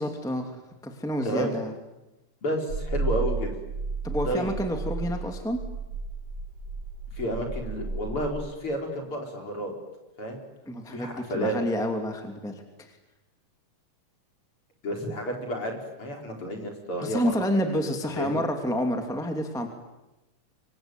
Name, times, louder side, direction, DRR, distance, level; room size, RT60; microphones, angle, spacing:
voice 1, 0.0-1.7 4.0-5.6 10.7-12.6 17.0-19.7, equal, ahead, 4 dB, 2.3 m, -29 dB
voice 2, 2.4-3.5 4.3-4.6 7.1-9.7 10.2-10.4 10.9-11.6 14.8-17.5 18.1-18.4, equal, 40° left, 2 dB, 5.2 m, -31 dB
sound 1, 2.7-8.3, right 4 dB, 35° right, 5.8 m, -33 dB
26.5 x 24.5 x 9.2 m, 0.99 s
omnidirectional pair, 3.7 m